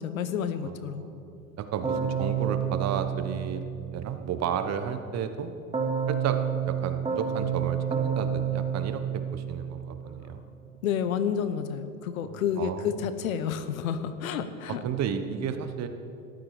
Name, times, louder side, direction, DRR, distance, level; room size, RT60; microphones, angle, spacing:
voice 1, 0.0-1.0 10.8-14.8, left 8 dB, 80° left, 12 dB, 1.0 m, -30 dB
voice 2, 0.6-5.5 6.1-10.5 12.2-12.9 14.7-15.9, right 7 dB, 40° right, 9 dB, 1.2 m, -33 dB
Keyboard (musical), 1.8-4.2 5.7-10.0, right 7 dB, 15° right, 1.6 m, -29 dB
13.5 x 12.0 x 4.9 m, 2.7 s
hypercardioid pair, 95°, 40 cm